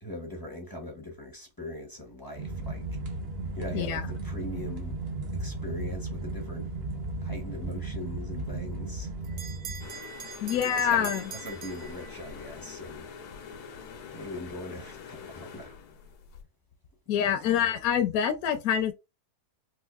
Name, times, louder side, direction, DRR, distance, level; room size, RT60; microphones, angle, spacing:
voice 1, 0.0-2.8 3.6-5.0 5.3-6.7 7.2-9.1 10.5-13.1 14.1-15.8 17.1-17.5, left 1 dB, 20° left, 0.5 m, -41 dB
sound 1, 2.4-9.9, right 2 dB, 50° right, 0.9 m, -35 dB
Bell, 8.7-12.5, right 7 dB, 75° right, 0.6 m, -43 dB
sound 2, 9.8-16.4, left 6 dB, 90° left, 1.3 m, -45 dB
voice 2, 10.4-11.3 17.1-18.9, left 9 dB, 75° left, 1.0 m, -26 dB
4.4 x 2.5 x 2.3 m
omnidirectional pair, 1.6 m